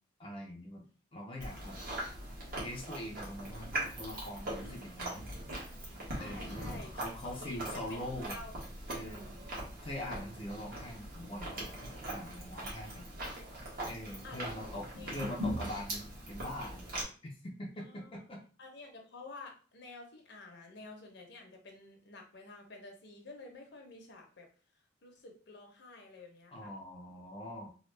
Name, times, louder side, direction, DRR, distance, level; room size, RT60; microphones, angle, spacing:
voice 1, 0.2-0.8 1.1-1.8 2.6-5.3 6.2-8.4 8.9-9.3 9.8-13.1 13.9-16.9 17.2-18.4 26.5-27.7, left 1 dB, 30° left, -2 dB, 0.5 m, -43 dB
Chewing mastication, 1.4-17.0, right 1 dB, 50° right, 1.3 m, -41 dB
voice 2, 6.1-6.9 7.4-8.0 8.3-8.5 8.9-9.4 14.2-14.7 15.0-15.3 17.8-18.2 18.6-24.5 25.0-26.7, left 3 dB, 60° left, 2 dB, 0.8 m, -50 dB
3.1 x 2.3 x 3.2 m, 0.39 s
head